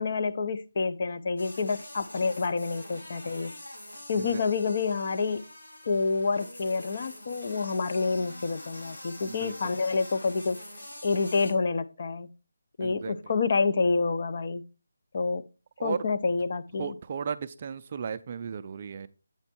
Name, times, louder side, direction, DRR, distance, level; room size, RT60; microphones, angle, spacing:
voice 1, 0.0-3.5 4.1-5.5 5.9-10.6 11.0-12.3 12.8-14.6 15.1-15.4 15.8-16.9, left 4 dB, 35° left, 11 dB, 0.5 m, -28 dB
sound 1, 1.4-11.5, left 1 dB, 85° left, 3.4 m, -45 dB
voice 2, 9.3-9.8 12.8-13.1 15.8-16.1 16.8-19.1, right 6 dB, 30° right, 12 dB, 0.3 m, -35 dB
8.4 x 4.4 x 4.2 m, 0.32 s
hypercardioid pair, 175°, 0 cm